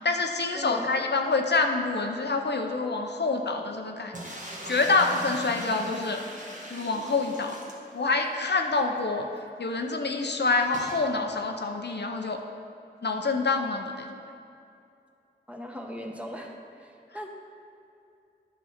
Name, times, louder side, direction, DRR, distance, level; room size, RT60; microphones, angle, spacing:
voice 1, 0.0-4.4 4.6-6.2 6.7-7.6 7.9-9.3 9.6-12.4 13.0-14.2, left 3 dB, 65° left, 4 dB, 0.6 m, -27 dB
voice 2, 0.5-0.9 15.5-16.5 16.8-17.3, equal, 5° right, 1 dB, 1.0 m, -38 dB
sound 1, 4.1-8.3 8.7-8.8 9.0-9.1 10.7-11.1, right 1 dB, 40° right, 1.3 m, -40 dB
10.0 x 6.1 x 4.3 m, 2.6 s
wide cardioid pair, 50°, 19 cm